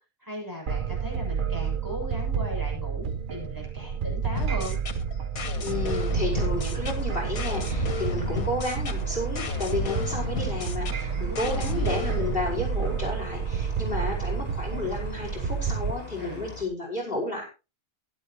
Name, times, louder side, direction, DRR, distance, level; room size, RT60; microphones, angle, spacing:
voice 1, 0.2-4.8 11.0-11.9 16.2-16.4, left 1 dB, 15° right, -1 dB, 7.1 m, -38 dB
sound 1, 0.7-15.9, right 7 dB, 45° right, 0.8 m, -30 dB
sound 2, 4.3-12.3, left 4 dB, 90° left, 1.8 m, -33 dB
voice 2, 5.6-17.5, left 2 dB, 40° left, -1 dB, 5.5 m, -32 dB
sound 3, 5.9-16.6, left 4 dB, 20° left, 5.3 m, -42 dB
15.5 x 12.0 x 3.0 m, 0.30 s
omnidirectional pair, 1.4 m